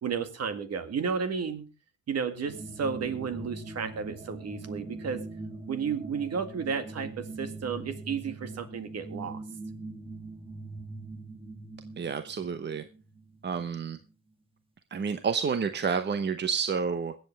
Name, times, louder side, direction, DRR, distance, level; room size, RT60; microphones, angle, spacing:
voice 1, 0.0-1.6 2.1-5.2 5.7-9.4, right 6 dB, 55° right, 9 dB, 1.9 m, -32 dB
sound 1, 2.5-14.1, right 2 dB, 20° right, 1.9 m, -42 dB
voice 2, 12.0-12.8 13.4-14.0 14.9-17.1, right 6 dB, 35° right, 10 dB, 0.9 m, -29 dB
22.0 x 8.1 x 3.4 m, 0.31 s
cardioid pair, 90°, 30 cm